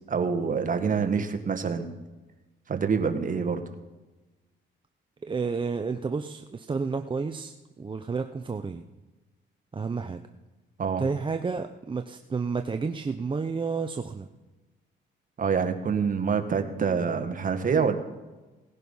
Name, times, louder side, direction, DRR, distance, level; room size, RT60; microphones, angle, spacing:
voice 1, 0.1-1.9 2.7-3.6 10.8-11.0 15.4-18.0, right 6 dB, 40° right, 7 dB, 1.7 m, -26 dB
voice 2, 5.2-8.8 9.7-10.2 11.0-14.3, right 4 dB, 25° right, 7 dB, 0.7 m, -31 dB
18.0 x 10.5 x 5.5 m, 1.2 s
cardioid pair, 90°, 20 cm